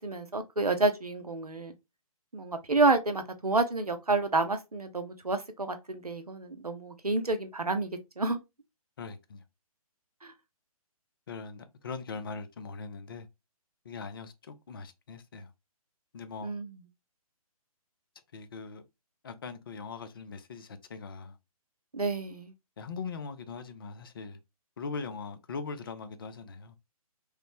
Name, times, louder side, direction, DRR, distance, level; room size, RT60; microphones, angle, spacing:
voice 1, 0.0-1.7 2.3-8.4 10.2-10.3 16.4-16.7 21.9-22.5, right 3 dB, 85° right, 0.6 m, -29 dB
voice 2, 9.0-9.4 11.3-13.3 13.8-15.5 16.1-16.5 18.3-18.8 19.2-21.4 22.8-24.4 24.8-26.8, left 4 dB, 40° left, 0.4 m, -41 dB
3.1 x 2.0 x 2.9 m
figure-of-eight pair, 135°, 19 cm